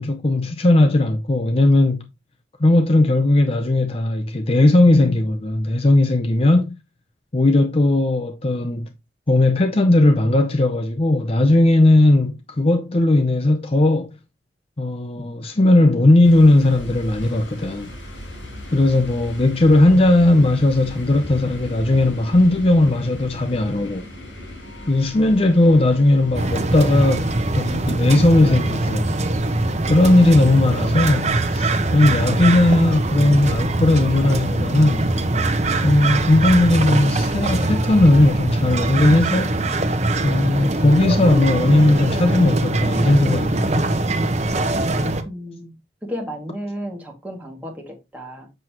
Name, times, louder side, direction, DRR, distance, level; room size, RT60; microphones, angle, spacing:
voice 1, 0.0-2.0 2.6-6.8 7.3-8.9 9.3-14.2 14.8-17.9 18.7-24.1 24.9-27.3 27.6-29.1 29.9-35.1 35.8-39.6 40.2-43.9, left 2 dB, 30° left, 0.6 m, -17 dB
sound 1, 16.2-27.8, left 1 dB, 80° left, 5.2 m, -37 dB
sound 2, 26.3-45.2, right 2 dB, 35° right, 1.0 m, -22 dB
voice 2, 45.2-45.8 46.0-48.5, equal, 10° right, 2.2 m, -33 dB
7.6 x 6.3 x 3.0 m
head